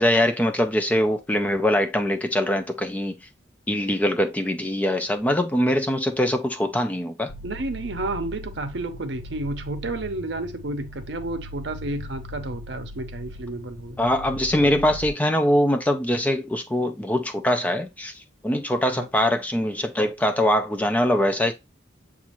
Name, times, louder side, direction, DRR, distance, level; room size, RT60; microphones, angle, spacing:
voice 1, 0.0-3.1 3.7-7.3 14.0-18.1 18.4-21.5, left 1 dB, 10° left, 0.3 m, -22 dB
sound 1, 7.3-15.1, left 2 dB, 85° left, 0.5 m, -39 dB
voice 2, 7.4-14.0 18.8-19.1, right 2 dB, 65° right, 0.7 m, -31 dB
7.1 x 2.4 x 2.9 m
head